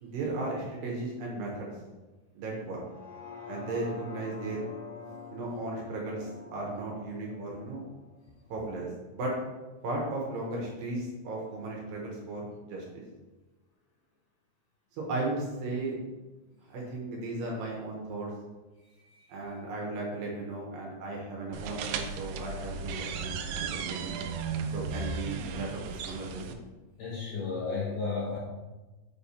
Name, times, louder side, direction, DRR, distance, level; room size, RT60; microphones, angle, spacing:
voice 1, 0.0-1.7 2.3-2.8 3.5-4.6 5.3-7.8 8.5-8.9 9.1-9.3 9.8-13.0 14.9-16.0 16.7-18.3 19.3-24.2 24.7-26.6, right 2 dB, 70° right, -2 dB, 2.5 m, -36 dB
sound 1, 2.8-9.0 9.4-9.5, left 4 dB, 90° left, 3.1 m, -46 dB
sound 2, 21.5-26.5, right 5 dB, 85° right, 2.0 m, -35 dB
voice 2, 27.0-28.4, left 4 dB, 70° left, -4 dB, 2.2 m, -33 dB
7.2 x 3.4 x 4.2 m, 1.2 s
omnidirectional pair, 4.6 m